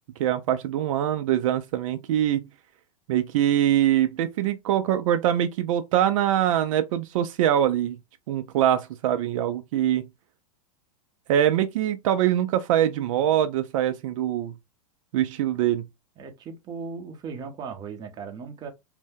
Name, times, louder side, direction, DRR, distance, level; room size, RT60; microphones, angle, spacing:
voice 1, 0.2-2.4 3.1-8.0 8.3-10.0 11.3-14.6 15.1-15.9, right 11 dB, 60° right, 0.4 m, -23 dB
voice 2, 16.2-18.7, right 5 dB, 20° right, 0.6 m, -37 dB
2.6 x 2.1 x 3.4 m
supercardioid pair, 150°, 19 cm